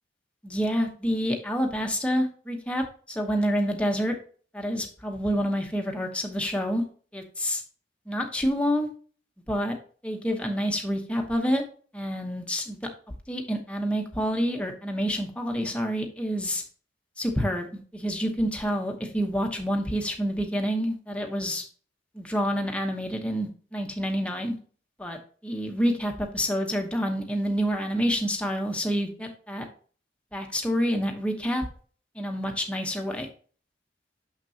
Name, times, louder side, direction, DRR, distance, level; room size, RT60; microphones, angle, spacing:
voice 1, 0.4-4.1 4.5-6.8 7.1-7.6 8.1-8.9 9.5-9.7 10.0-11.6 11.9-12.8 13.3-16.6 17.2-21.6 22.1-24.5 25.0-25.2 25.4-29.7 30.3-31.6 32.1-33.3, equal, 5° left, 2 dB, 0.9 m, -28 dB
6.6 x 5.9 x 2.8 m, 0.42 s
head